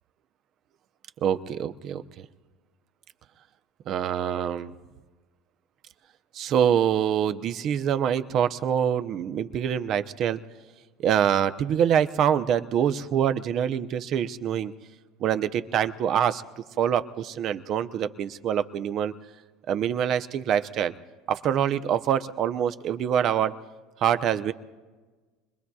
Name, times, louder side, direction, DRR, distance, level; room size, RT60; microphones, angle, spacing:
voice 1, 1.2-2.3 3.9-4.7 6.3-10.4 11.0-14.7 15.2-16.4 16.8-19.1 19.7-20.9 21.3-23.6 24.0-24.5, right 9 dB, 50° right, 11 dB, 0.7 m, -25 dB
28.0 x 21.5 x 2.4 m, 1.3 s
hypercardioid pair, 85°, 0 cm